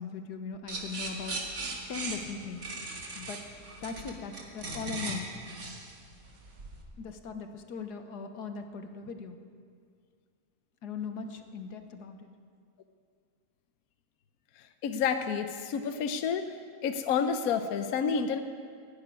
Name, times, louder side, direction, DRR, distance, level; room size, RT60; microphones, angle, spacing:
voice 1, 0.0-1.4 1.9-2.8 3.2-5.3 7.0-9.4 10.8-12.3, left 5 dB, 85° left, 7 dB, 1.6 m, -39 dB
sound 1, 0.7-6.8, right 2 dB, 60° right, 2.3 m, -38 dB
voice 2, 14.8-16.4 16.8-18.4, left 6 dB, 70° left, 8 dB, 1.2 m, -29 dB
14.5 x 10.5 x 9.5 m, 2.1 s
omnidirectional pair, 1.7 m